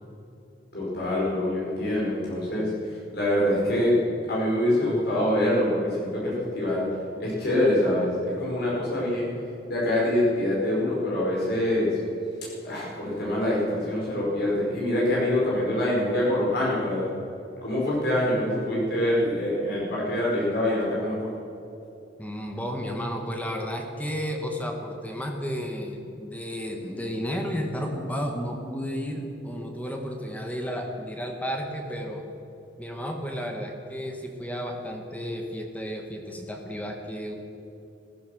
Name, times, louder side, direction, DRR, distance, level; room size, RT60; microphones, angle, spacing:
voice 1, 0.7-4.0 4.3-6.9 7.2-9.3 9.7-12.0 12.6-17.1 17.6-21.3, left 1 dB, 60° left, -5 dB, 4.6 m, -25 dB
voice 2, 22.2-32.2 32.8-37.3, equal, 10° left, 2 dB, 1.6 m, -32 dB
16.0 x 14.5 x 6.3 m, 2.8 s
head